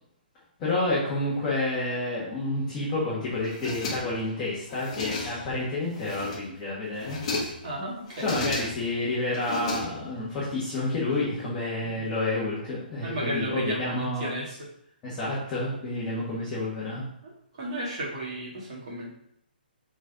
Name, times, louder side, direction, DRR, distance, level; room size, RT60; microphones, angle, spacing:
voice 1, 0.6-7.2 8.2-14.3 15.0-17.0, left 2 dB, 15° left, -9 dB, 1.7 m, -29 dB
sound 1, 3.4-4.3 4.7-5.6 6.0-6.6 6.9-7.7 8.1-9.0 9.3-10.3, left 3 dB, 30° left, 1.4 m, -34 dB
voice 2, 7.6-8.4 11.8-12.1 13.0-14.6 17.2-17.3 17.6-19.1, right 1 dB, 30° right, -4 dB, 2.6 m, -33 dB
6.2 x 4.4 x 5.2 m, 0.73 s
hypercardioid pair, 180°, 6 cm